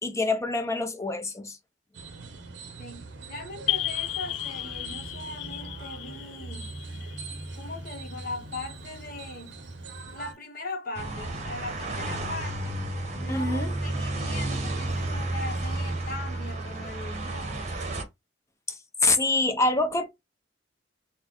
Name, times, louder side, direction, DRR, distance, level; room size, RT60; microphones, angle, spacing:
voice 1, 0.0-1.6 13.3-13.7 18.7-20.1, left 2 dB, 15° left, 0.6 m, -26 dB
sound 1, 1.9-10.3, right 3 dB, 70° right, 0.7 m, -41 dB
voice 2, 2.8-6.8 7.5-9.6 10.1-12.8 13.1-17.8, left 2 dB, 50° left, 1.0 m, -40 dB
sound 2, 3.7-8.1, left 14 dB, 85° left, 0.3 m, -34 dB
sound 3, 11.0-18.0, right 1 dB, 40° right, 0.8 m, -31 dB
4.0 x 2.2 x 3.0 m
head